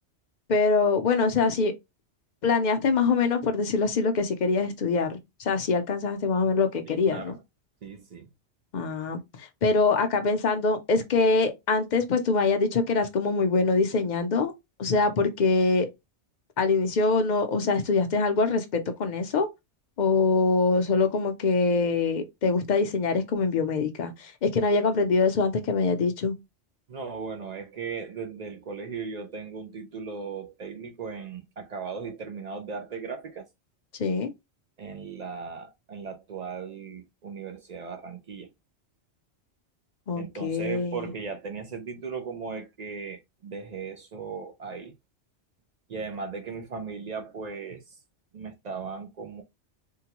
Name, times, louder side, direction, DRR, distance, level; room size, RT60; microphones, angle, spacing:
voice 1, 0.5-1.7 2.4-7.4 8.7-14.5 14.8-15.9 16.6-19.5 20.0-26.3 34.0-34.3 40.1-41.1, left 4 dB, 50° left, 0.6 m, -24 dB
voice 2, 6.9-7.4 7.8-8.3 26.9-33.5 34.8-38.5 40.1-44.9 45.9-48.0 48.3-49.4, right 5 dB, 55° right, 0.5 m, -37 dB
3.7 x 2.2 x 2.8 m
omnidirectional pair, 1.2 m